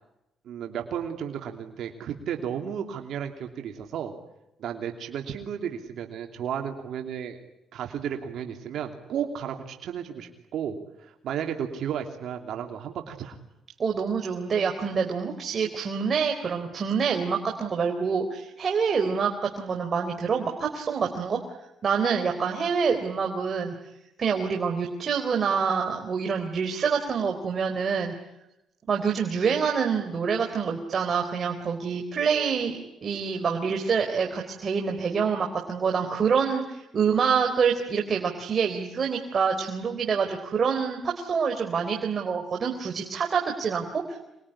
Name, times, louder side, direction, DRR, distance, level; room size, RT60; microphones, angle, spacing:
voice 1, 0.4-4.1 4.6-7.4 7.7-13.4, right 8 dB, 75° right, 4 dB, 3.0 m, -33 dB
voice 2, 13.8-21.4 21.8-23.7 24.2-28.1 28.9-44.2, right 6 dB, 45° right, 3 dB, 3.8 m, -26 dB
27.0 x 22.0 x 10.0 m, 0.92 s
cardioid pair, 90°, 0 cm